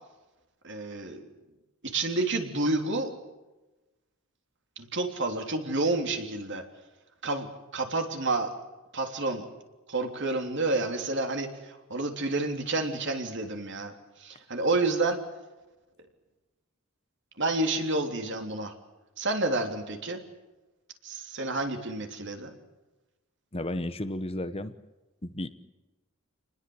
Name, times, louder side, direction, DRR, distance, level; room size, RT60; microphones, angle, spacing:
voice 1, 0.6-1.2 1.8-3.1 4.8-6.6 7.2-7.5 7.7-8.5 8.9-9.4 9.9-13.9 14.2-15.2 17.4-18.7 19.2-20.2 21.0-22.5, right 2 dB, 55° right, 5 dB, 3.3 m, -29 dB
voice 2, 23.5-24.8 25.2-25.5, left 1 dB, 25° left, 11 dB, 1.1 m, -33 dB
28.0 x 20.5 x 8.0 m, 1.1 s
head